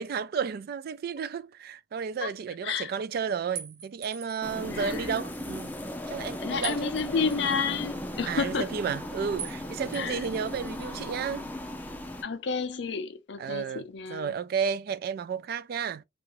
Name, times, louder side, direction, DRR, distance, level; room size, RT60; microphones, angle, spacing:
voice 1, 0.0-5.8 6.1-6.9 8.3-11.5 13.4-13.8 14.1-16.0, right 6 dB, 55° right, 0.3 m, -32 dB
sound 1, 3.6-4.5 6.6-7.6 9.4-9.6 9.9-10.9, right 8 dB, 80° right, 0.7 m, -42 dB
sound 2, 4.4-12.2, left 1 dB, 10° left, 0.4 m, -37 dB
voice 2, 4.6-5.2 6.4-8.7 9.9-10.3 12.2-14.4, left 5 dB, 65° left, 0.5 m, -31 dB
2.8 x 2.4 x 2.9 m
head